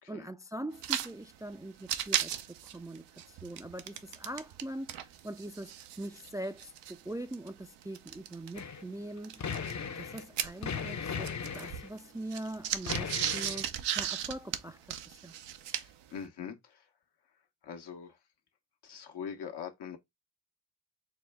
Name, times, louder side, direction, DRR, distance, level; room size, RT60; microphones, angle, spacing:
voice 1, 0.1-9.4 10.0-15.3, right 1 dB, 10° right, 0.3 m, -42 dB
sound 1, 0.7-1.1 1.4-1.5 1.8-4.6 4.9-8.6 9.2-10.9 11.2-16.0, right 10 dB, 90° right, 0.6 m, -36 dB
sound 2, 8.5-8.8 9.2-10.3 10.6-11.9 12.8-13.6, left 6 dB, 45° left, 0.7 m, -37 dB
voice 2, 15.7-16.8 17.6-18.2 18.8-20.0, left 7 dB, 75° left, 1.1 m, -43 dB
4.6 x 2.2 x 3.4 m
supercardioid pair, 45°, 41 cm